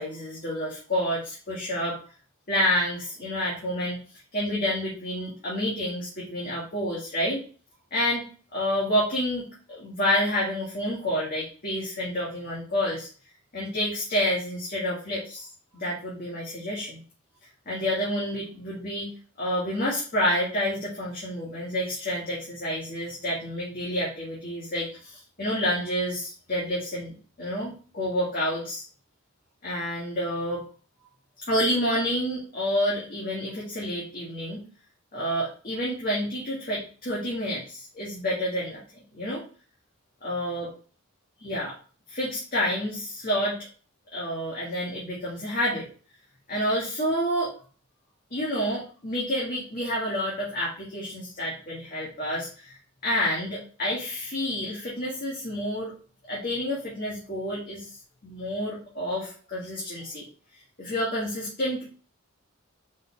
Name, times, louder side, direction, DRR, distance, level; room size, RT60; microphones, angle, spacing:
voice 1, 0.0-2.0 2.5-4.0 4.3-7.4 7.9-8.3 8.5-13.1 13.5-15.5 15.7-17.0 17.7-19.1 19.4-28.8 29.6-30.6 31.5-34.6 35.1-38.8 39.1-39.4 40.2-40.7 41.4-41.7 42.1-43.6 44.1-45.8 46.5-47.5 48.3-52.8 53.0-55.9 56.3-57.9 58.2-60.2 60.8-61.9, equal, 40° left, -5 dB, 1.9 m, -29 dB
5.3 x 4.1 x 4.6 m, 0.39 s
head